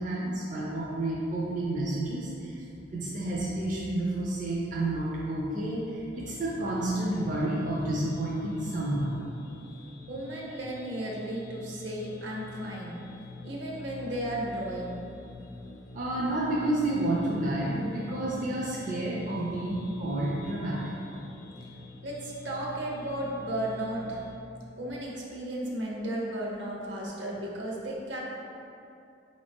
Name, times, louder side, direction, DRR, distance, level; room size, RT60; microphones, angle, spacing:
voice 1, 0.0-2.6 2.9-9.2 15.9-20.9, right 1 dB, 45° right, -5 dB, 0.5 m, -30 dB
sound 1, 6.1-24.4, left 3 dB, 90° left, 0.4 m, -46 dB
voice 2, 10.1-13.0 13.4-15.0 22.0-24.2 24.8-28.2, right 1 dB, 75° right, -3 dB, 0.8 m, -34 dB
4.5 x 2.6 x 3.5 m, 2.6 s
head